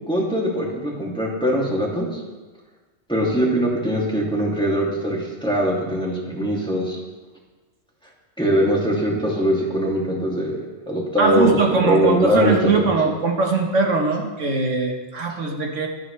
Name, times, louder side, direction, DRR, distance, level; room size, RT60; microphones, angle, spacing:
voice 1, 0.1-2.2 3.1-7.0 8.4-12.9, equal, 5° left, -4 dB, 2.8 m, -21 dB
voice 2, 11.2-15.9, right 4 dB, 70° right, 2 dB, 1.7 m, -21 dB
24.5 x 8.7 x 3.4 m, 1.3 s
omnidirectional pair, 1.3 m